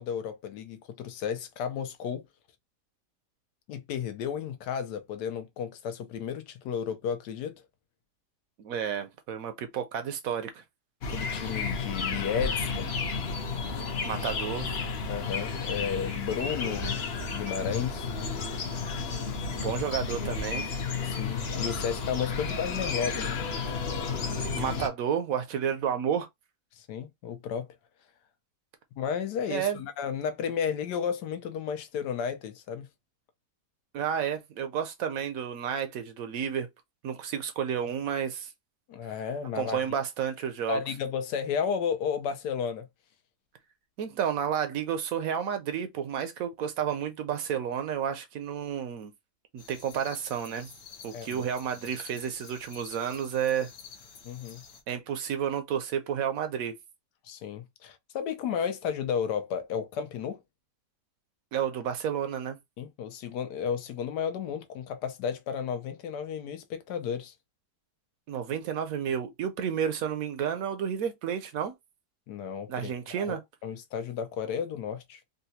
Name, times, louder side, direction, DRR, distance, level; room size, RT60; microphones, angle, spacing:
voice 1, 0.0-2.2 3.7-7.6 11.1-12.9 13.7-13.8 15.1-17.0 17.3-18.1 21.0-23.4 26.8-27.7 29.0-32.9 38.9-39.8 40.7-42.9 51.1-51.4 54.2-54.6 57.2-60.4 62.8-67.3 72.3-72.9 73.2-75.2, left 7 dB, 90° left, 1.3 m, -33 dB
voice 2, 8.6-10.6 14.0-14.7 19.5-20.7 24.5-26.3 29.5-29.8 33.9-36.7 37.0-38.5 39.5-40.8 44.0-49.1 49.5-50.7 51.0-53.7 54.9-56.7 61.5-62.6 68.3-71.7 72.7-73.4, right 8 dB, 70° right, 0.9 m, -31 dB
sound 1, 11.0-24.9, left 4 dB, 55° left, 0.7 m, -32 dB
sound 2, 49.6-54.8, left 6 dB, 70° left, 1.2 m, -49 dB
3.9 x 2.2 x 2.7 m
omnidirectional pair, 1.7 m